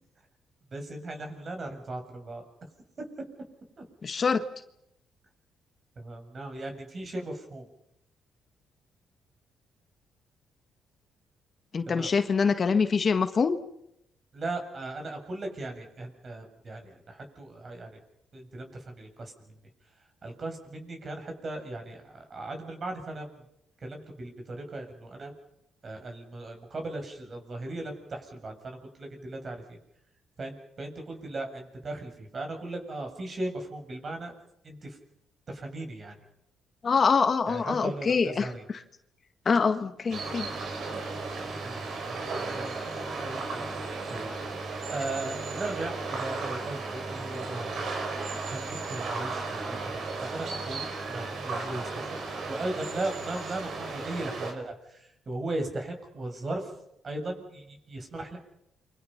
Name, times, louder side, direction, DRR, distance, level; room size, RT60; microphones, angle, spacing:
voice 1, 0.7-2.4 3.8-3.9 6.0-7.6 11.9-12.1 14.3-16.8 17.1-17.9 18.3-19.3 20.2-23.3 23.8-25.3 25.8-29.6 30.4-34.3 34.6-35.0 35.5-36.1 37.5-38.6 41.4-43.6 44.1-44.3 44.9-47.9 48.5-52.2 52.5-56.7 57.0-58.4, right 2 dB, 40° right, 4 dB, 7.8 m, -37 dB
voice 2, 4.0-4.4 11.7-13.6 36.8-38.5 38.7-38.8 39.4-40.5, left 5 dB, 40° left, 8 dB, 1.6 m, -25 dB
sound 1, 40.1-54.5, right 3 dB, 65° right, 6.1 m, -35 dB
29.5 x 25.5 x 5.9 m, 0.80 s
cardioid pair, 90°, 0 cm